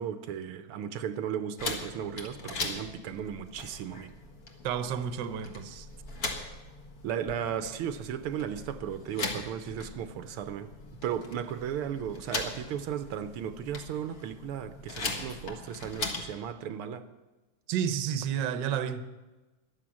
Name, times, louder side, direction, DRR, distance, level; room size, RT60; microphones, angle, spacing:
voice 1, 0.0-4.1 7.0-10.7 11.0-17.1, right 9 dB, 85° right, 10 dB, 1.7 m, -35 dB
sound 1, 1.6-16.4, left 3 dB, 45° left, 2.0 m, -40 dB
voice 2, 4.6-5.9 17.7-19.0, right 8 dB, 65° right, 9 dB, 1.4 m, -31 dB
13.5 x 11.0 x 7.5 m, 1.1 s
omnidirectional pair, 2.4 m